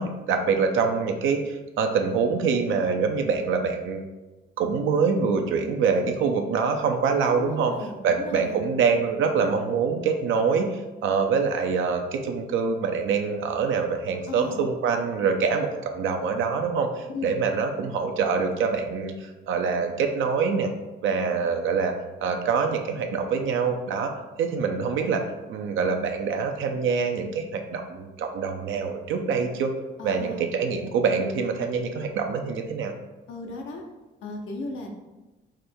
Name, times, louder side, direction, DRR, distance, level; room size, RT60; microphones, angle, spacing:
voice 1, 0.0-4.0 4.6-7.7 8.0-10.7 11.0-15.7 15.9-20.7 21.0-21.9 22.2-24.1 24.4-25.2 25.5-29.7 30.0-32.9, right 5 dB, 80° right, 4 dB, 0.5 m, -25 dB
voice 2, 7.4-8.6 14.3-14.7 17.1-17.4 30.0-30.5 33.3-33.8 34.2-34.9, left 2 dB, 85° left, 1 dB, 0.8 m, -36 dB
5.0 x 2.2 x 4.3 m, 1.1 s
cardioid pair, 90°, 20 cm